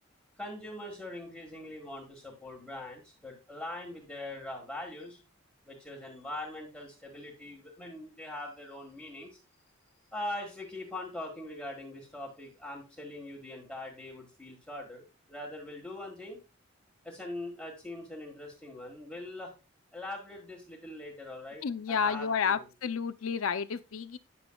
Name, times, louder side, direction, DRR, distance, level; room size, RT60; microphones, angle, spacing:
voice 1, 0.4-5.2 5.6-9.4 10.1-15.0 15.3-16.4 17.0-19.5 19.9-22.7, left 1 dB, 5° left, 1.5 m, -42 dB
voice 2, 21.6-24.2, left 6 dB, 85° left, 0.5 m, -31 dB
9.9 x 6.9 x 2.3 m
head